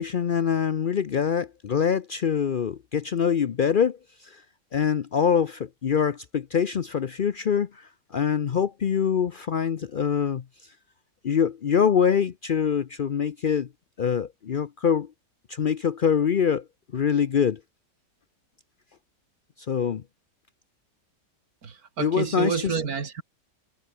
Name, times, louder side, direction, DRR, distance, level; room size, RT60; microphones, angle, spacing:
voice 1, 0.0-4.4 4.7-10.4 11.2-13.7 14.0-15.1 15.5-16.6 16.9-17.6 19.7-20.0 22.0-22.8, left 7 dB, 90° left, 0.4 m, -24 dB
voice 2, 21.6-23.2, right 6 dB, 55° right, 2.5 m, -29 dB
omnidirectional pair, 1.9 m